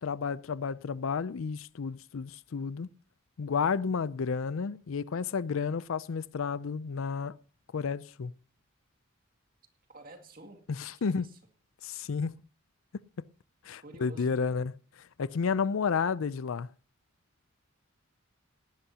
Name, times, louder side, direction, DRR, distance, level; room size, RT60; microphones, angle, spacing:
voice 1, 0.0-2.9 3.4-7.3 7.7-8.3 10.7-11.3 11.8-12.4 13.2-13.3 13.6-14.7 15.2-16.7, left 5 dB, 75° left, 0.5 m, -31 dB
voice 2, 9.9-10.6 11.0-11.3 13.8-14.4, right 2 dB, 45° right, 2.2 m, -49 dB
19.0 x 11.5 x 2.8 m
head